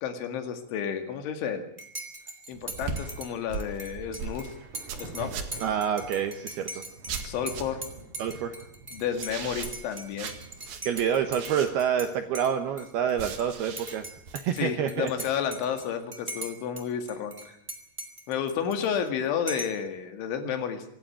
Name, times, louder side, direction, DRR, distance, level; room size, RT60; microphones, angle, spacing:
voice 1, 0.0-1.7 2.5-4.5 5.0-5.3 7.2-7.8 8.9-10.3 14.5-17.6 18.3-20.9, left 8 dB, 70° left, 8 dB, 4.3 m, -31 dB
Dishes pots and pans / Cutlery silverware / Chink clink, 1.8-12.1 12.3-13.4 13.8-16.8 17.1-19.1 19.5-19.8, right 1 dB, 15° right, 1.7 m, -41 dB
sound 1, 2.5-5.8 7.1-7.9 9.1-12.0 13.1-14.4, right 6 dB, 55° right, 3.2 m, -38 dB
Thunder, 2.8-16.1 16.4-17.8 18.6-18.8, right 3 dB, 35° right, 3.0 m, -50 dB
voice 2, 5.6-6.7 8.2-8.5 10.8-14.0 14.3-15.1, right 8 dB, 75° right, 7 dB, 2.4 m, -27 dB
25.5 x 11.5 x 9.9 m, 0.75 s
omnidirectional pair, 5.8 m